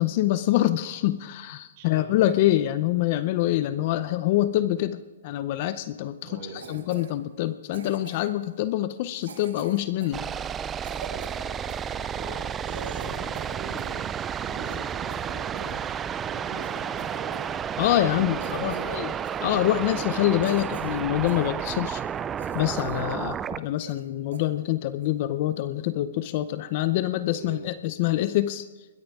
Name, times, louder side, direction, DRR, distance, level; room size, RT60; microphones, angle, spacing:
voice 1, 0.0-5.0 5.2-10.2 17.8-19.1 19.4-22.0 22.5-28.7, left 14 dB, 35° left, 14 dB, 0.6 m, -25 dB
voice 2, 1.8-2.3 6.2-6.9 11.1-14.0 14.4-17.5 18.0-19.3 27.3-27.6, right 3 dB, 40° right, -1 dB, 6.4 m, -42 dB
Cough, 6.6-7.1 7.7-8.4 9.2-11.9 12.3-12.4 12.6-14.0 14.3-15.8 16.2-16.3 16.6-17.5 17.8-18.0 18.4-19.0 19.2-19.5 20.0-20.1 20.4-21.5 21.9-22.0 22.4-23.1 23.4-23.5 23.8-24.1 24.3-24.5 25.0-25.2, right 6 dB, 80° right, 2.3 m, -45 dB
sound 1, 10.1-23.6, right 8 dB, 15° right, 0.3 m, -31 dB
21.0 x 14.0 x 3.6 m, 1.3 s
hypercardioid pair, 165°, 0 cm